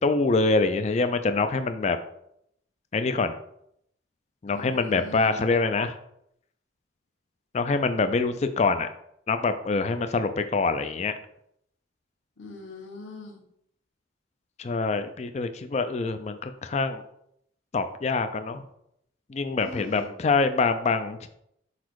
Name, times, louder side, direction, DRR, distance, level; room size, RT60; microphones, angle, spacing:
voice 1, 0.0-2.0 2.9-3.3 4.4-6.0 7.5-8.9 9.3-11.1 14.6-17.0 17.7-18.6 19.3-21.3, left 3 dB, 35° left, 9 dB, 0.3 m, -25 dB
voice 2, 4.5-5.4 12.4-13.4 19.6-20.1, left 2 dB, 75° left, 1 dB, 1.4 m, -41 dB
5.2 x 4.1 x 4.6 m, 0.74 s
head